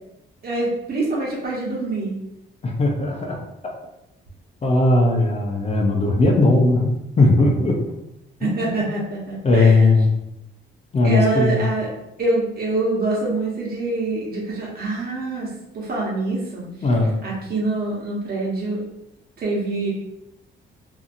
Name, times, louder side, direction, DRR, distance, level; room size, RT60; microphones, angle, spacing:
voice 1, 0.4-2.2 8.4-9.9 11.0-11.9 12.2-16.6 17.2-18.8 19.4-19.9, right 2 dB, 50° right, -4 dB, 1.1 m, -25 dB
voice 2, 2.6-3.4 4.6-7.9 8.4-8.8 9.4-10.1 10.9-11.6 16.8-17.2, left 2 dB, 30° left, 0 dB, 0.5 m, -18 dB
2.7 x 2.6 x 2.5 m, 0.86 s
cardioid pair, 90°, 20 cm